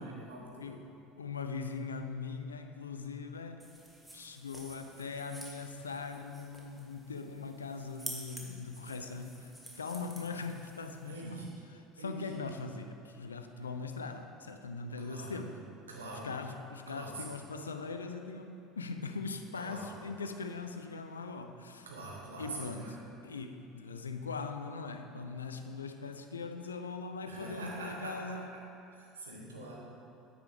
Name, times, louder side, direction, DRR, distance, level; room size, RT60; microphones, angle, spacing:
voice 1, 0.0-0.7 11.0-11.5 12.0-12.3 15.0-15.4 15.9-16.3 16.9-17.2 19.5-19.9 21.8-22.9 27.3-28.4 29.0-29.8, right 2 dB, 85° right, -3 dB, 1.4 m, -44 dB
voice 2, 0.6-3.7 4.1-15.6 16.2-21.9 22.4-23.0 23.2-28.5, left 4 dB, 85° left, 7 dB, 0.5 m, -41 dB
sound 1, 3.6-11.1, right 1 dB, 10° right, 1.8 m, -50 dB
9.2 x 8.8 x 3.4 m, 2.7 s
hypercardioid pair, 70°, 0 cm